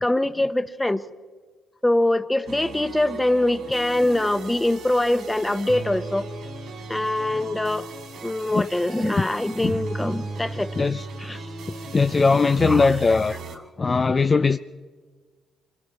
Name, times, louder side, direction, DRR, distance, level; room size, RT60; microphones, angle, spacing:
voice 1, 0.0-1.0 1.8-6.3 6.9-7.9 8.2-10.7 11.2-11.4 12.7-13.2, left 1 dB, 10° left, 11 dB, 1.0 m, -23 dB
sound 1, 2.5-13.6, right 3 dB, 75° right, 3.7 m, -36 dB
voice 2, 11.9-13.4 13.8-14.6, left 4 dB, 30° left, 9 dB, 0.5 m, -19 dB
26.5 x 23.0 x 4.3 m, 1.5 s
cardioid pair, 90°, 0 cm